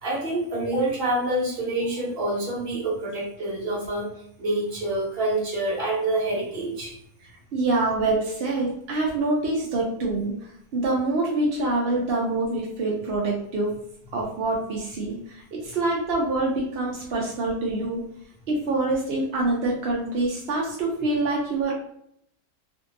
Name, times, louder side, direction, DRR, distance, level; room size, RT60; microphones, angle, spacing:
voice 1, 0.0-4.1 4.4-6.9, right 1 dB, 45° right, -4 dB, 1.1 m, -27 dB
voice 2, 7.5-10.3 10.7-13.7 14.1-15.2 15.5-18.0 18.5-21.7, right 2 dB, 65° right, -3 dB, 0.6 m, -25 dB
2.7 x 2.6 x 2.5 m, 0.72 s
omnidirectional pair, 1.6 m